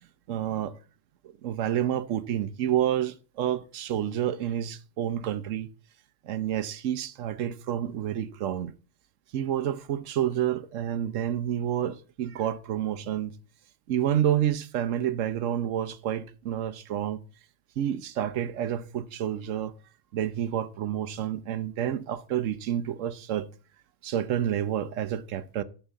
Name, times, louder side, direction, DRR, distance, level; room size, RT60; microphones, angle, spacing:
voice 1, 0.3-0.8 1.4-5.7 6.2-8.7 9.3-13.3 13.9-17.2 17.8-19.7 20.1-23.5 24.0-25.6, right 10 dB, 85° right, 1.1 m, -29 dB
11.5 x 4.5 x 8.1 m
omnidirectional pair, 1.3 m